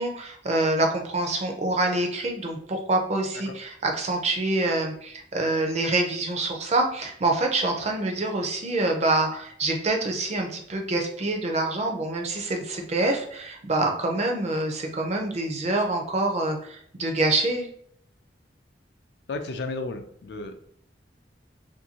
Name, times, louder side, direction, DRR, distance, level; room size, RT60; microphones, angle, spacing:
voice 1, 0.0-17.7, right 2 dB, 40° right, 3 dB, 0.5 m, -26 dB
voice 2, 19.3-20.6, left 3 dB, 65° left, 7 dB, 0.4 m, -33 dB
2.6 x 2.6 x 2.8 m, 0.66 s
head